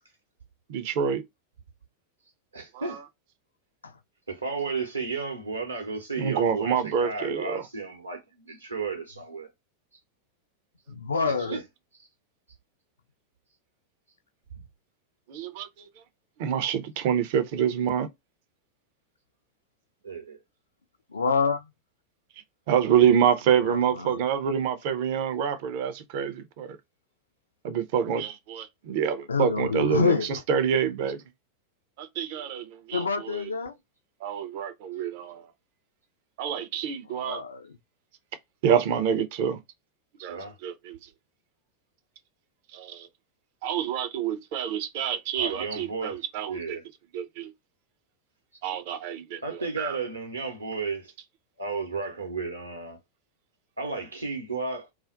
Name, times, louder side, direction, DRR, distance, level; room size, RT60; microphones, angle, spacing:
voice 1, 0.7-1.2 6.2-7.6 15.3-15.9 16.4-18.1 22.7-26.8 27.6-31.2 32.0-33.5 34.2-35.4 36.4-37.4 38.6-39.6 40.2-40.4 40.6-41.0 42.7-43.1 43.6-46.8 47.1-47.5 48.6-49.4 49.8-50.0, right 8 dB, 50° right, 0.5 m, -27 dB
voice 2, 2.5-3.0 4.3-9.5 11.2-11.6 20.0-20.4 40.3-40.6 45.3-46.8 49.4-51.1 51.6-53.0 53.8-54.9, right 4 dB, 80° right, 0.9 m, -33 dB
voice 3, 10.9-11.6 21.1-21.7 23.2-24.2 29.3-30.4 32.9-33.8 37.1-37.7, left 4 dB, 75° left, 0.3 m, -27 dB
2.4 x 2.1 x 2.4 m
figure-of-eight pair, 90°, 0 cm